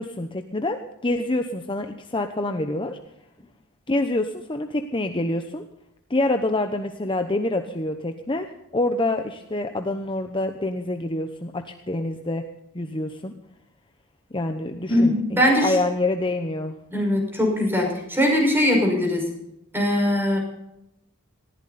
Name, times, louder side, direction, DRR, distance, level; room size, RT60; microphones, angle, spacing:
voice 1, 0.0-3.0 3.9-5.6 6.1-12.4 12.7-13.3 14.3-16.8, left 2 dB, 25° left, 6 dB, 0.9 m, -26 dB
voice 2, 14.9-15.7 16.9-19.3 19.7-20.4, left 1 dB, 10° right, 1 dB, 5.6 m, -21 dB
19.5 x 14.5 x 4.2 m, 0.84 s
head